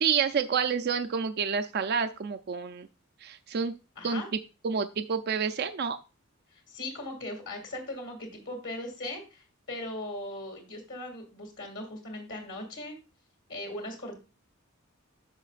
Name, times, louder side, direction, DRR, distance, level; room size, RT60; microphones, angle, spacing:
voice 1, 0.0-2.9 3.2-3.7 4.0-4.2 4.6-6.0, right 6 dB, 50° right, 7 dB, 0.4 m, -28 dB
voice 2, 4.0-4.3 6.5-12.9 13.5-14.2, left 1 dB, 60° left, 3 dB, 2.4 m, -39 dB
10.5 x 6.4 x 2.5 m, 0.31 s
head